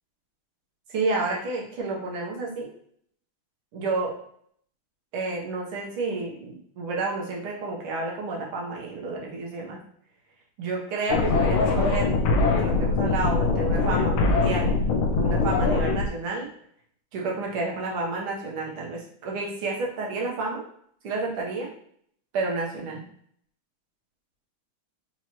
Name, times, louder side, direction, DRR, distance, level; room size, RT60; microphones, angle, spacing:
voice 1, 0.9-2.7 3.7-4.1 5.1-9.8 10.6-12.1 12.4-14.8 15.1-16.5 17.1-20.6 21.0-21.7 22.3-23.0, right 3 dB, 90° right, -1 dB, 1.9 m, -30 dB
sound 1, 11.1-16.1, left 3 dB, 90° left, 1.5 m, -22 dB
4.8 x 3.0 x 2.9 m, 0.64 s
omnidirectional pair, 2.3 m